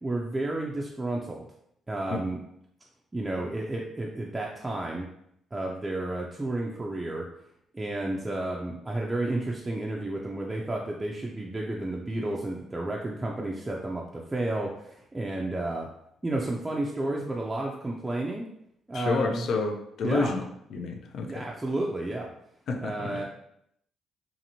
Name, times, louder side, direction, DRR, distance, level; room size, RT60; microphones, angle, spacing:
voice 1, 0.0-1.5 1.9-2.4 3.1-5.1 5.5-7.3 7.7-15.9 16.2-18.5 18.9-19.5 20.0-20.3 21.2-22.3 22.8-23.2, right 2 dB, 20° right, -2 dB, 0.4 m, -31 dB
voice 2, 18.9-21.5 22.7-23.2, left 3 dB, 70° left, 4 dB, 0.4 m, -30 dB
2.8 x 2.5 x 2.7 m, 0.74 s
cardioid pair, 90°, 0 cm